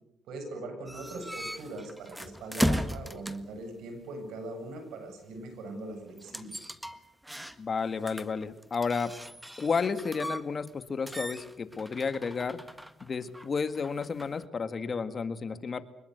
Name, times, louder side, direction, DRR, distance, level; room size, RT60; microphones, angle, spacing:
voice 1, 0.3-6.6, right 2 dB, 85° right, 6 dB, 7.9 m, -41 dB
sound 1, 0.9-3.6 6.2-10.8 11.1-14.4, equal, 5° right, 1.6 m, -36 dB
voice 2, 7.6-9.1 9.6-12.6 13.0-15.8, left 5 dB, 40° left, 11 dB, 1.8 m, -32 dB
25.0 x 21.5 x 8.2 m, 0.81 s
cardioid pair, 90°, 0 cm